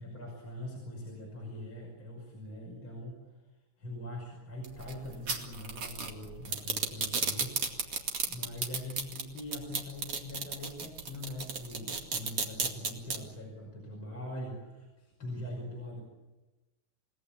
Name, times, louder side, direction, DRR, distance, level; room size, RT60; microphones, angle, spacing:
voice 1, 0.0-3.5 3.8-8.0 8.3-16.0, left 1 dB, 25° left, -1 dB, 6.2 m, -43 dB
sound 1, 4.6-13.2, right 5 dB, 40° right, 2.6 m, -33 dB
28.5 x 18.5 x 8.6 m, 1.1 s
omnidirectional pair, 5.1 m